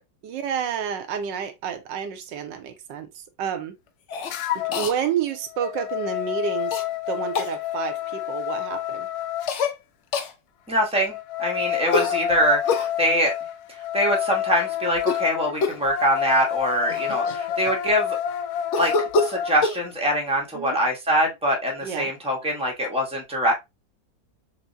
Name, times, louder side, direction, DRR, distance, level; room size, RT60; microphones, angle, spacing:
voice 1, 0.2-3.7 4.5-6.8 7.1-9.1 20.5-20.8 21.8-22.1, right 8 dB, 80° right, 1.4 m, -30 dB
Cough, 4.1-4.3 4.7-4.9 6.7-6.8 7.3-7.5 9.5-9.7 10.1-10.3 11.9-12.9 14.9-15.3 15.6-15.9 16.6-16.7 16.9-17.9 18.7-19.8, left 4 dB, 90° left, 0.6 m, -26 dB
sound 1, 4.3-4.9 5.3-9.5 11.0-19.6, left 10 dB, 70° left, 0.9 m, -29 dB
voice 2, 10.7-13.3 13.9-18.2 18.8-23.5, equal, 5° right, 0.4 m, -24 dB
5.8 x 2.1 x 2.5 m
omnidirectional pair, 1.9 m